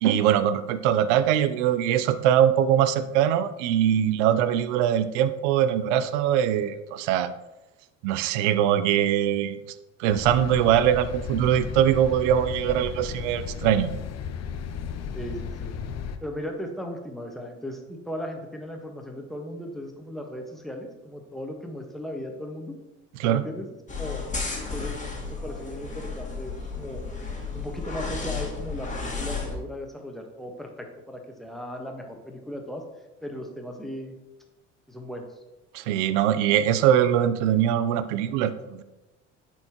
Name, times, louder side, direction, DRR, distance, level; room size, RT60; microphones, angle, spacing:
voice 1, 0.0-7.3 8.0-9.6 10.0-13.9 23.2-23.4 35.7-38.8, right 10 dB, 70° right, 13 dB, 0.6 m, -22 dB
sound 1, 10.1-16.2, left 7 dB, 45° left, 0.7 m, -34 dB
voice 2, 15.1-15.7 16.2-22.8 23.3-24.2 24.7-25.0 25.3-27.0 27.5-32.8 33.2-34.1 34.9-35.3, equal, ahead, 2 dB, 1.3 m, -37 dB
sound 2, 23.9-29.6, left 4 dB, 20° left, 1.9 m, -33 dB
10.5 x 4.4 x 3.0 m, 1.0 s
hypercardioid pair, 65°, 37 cm